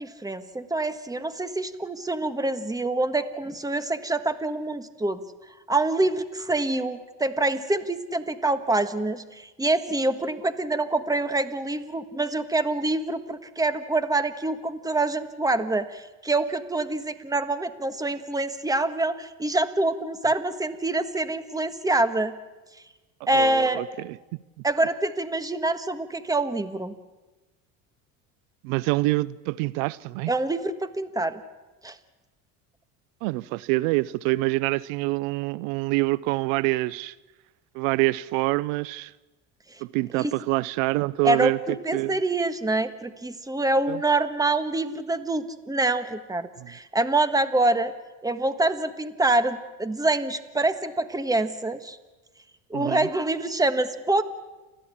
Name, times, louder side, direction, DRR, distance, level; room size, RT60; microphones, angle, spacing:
voice 1, 0.0-5.2 5.7-22.3 23.3-23.8 24.6-26.9 30.3-31.4 31.8-32.0 40.1-40.3 41.2-47.9 48.2-52.0 52.7-54.2, right 2 dB, 10° right, 1.4 m, -26 dB
voice 2, 23.3-24.2 28.6-30.3 33.2-37.1 37.7-39.1 39.8-41.6 41.9-42.2 43.9-44.0 46.6-46.7 52.7-53.1, right 21 dB, 80° right, 0.6 m, -26 dB
29.5 x 13.5 x 8.6 m
supercardioid pair, 100°, 40 cm